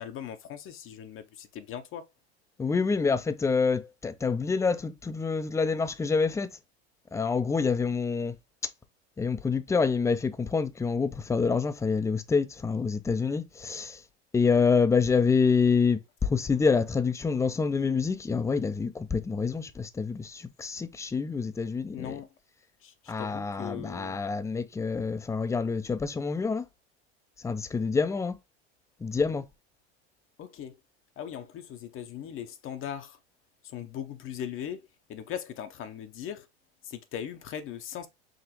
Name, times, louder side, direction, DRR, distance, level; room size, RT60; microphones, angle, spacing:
voice 1, 0.0-2.0 21.9-22.3 22.8-24.2 30.4-30.8 31.2-33.2 33.6-36.5 36.8-38.1, left 9 dB, 40° left, 0.7 m, -39 dB
voice 2, 2.6-6.6 7.1-8.4 8.6-8.7 9.2-14.0 14.3-22.2 23.1-26.7 27.4-28.4 29.0-29.5, left 5 dB, 10° left, 0.4 m, -27 dB
5.0 x 2.9 x 2.8 m
hypercardioid pair, 95°, 32 cm